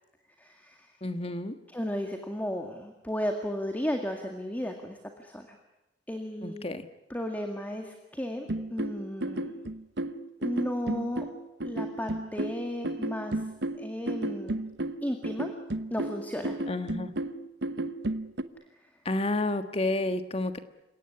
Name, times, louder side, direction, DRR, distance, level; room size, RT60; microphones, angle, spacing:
voice 1, 0.4-0.9 1.7-5.6 6.1-6.6 7.1-9.5 10.4-11.3 11.6-13.4 13.8-14.6 15.0-15.5 15.9-16.6 18.7-18.9, equal, 10° left, 4 dB, 2.0 m, -34 dB
voice 2, 1.0-1.5 6.4-6.9 16.7-17.1 19.0-20.6, left 2 dB, 35° left, 9 dB, 1.5 m, -30 dB
sound 1, 8.5-18.4, right 1 dB, 75° right, 1.1 m, -33 dB
29.0 x 18.0 x 9.7 m, 0.95 s
head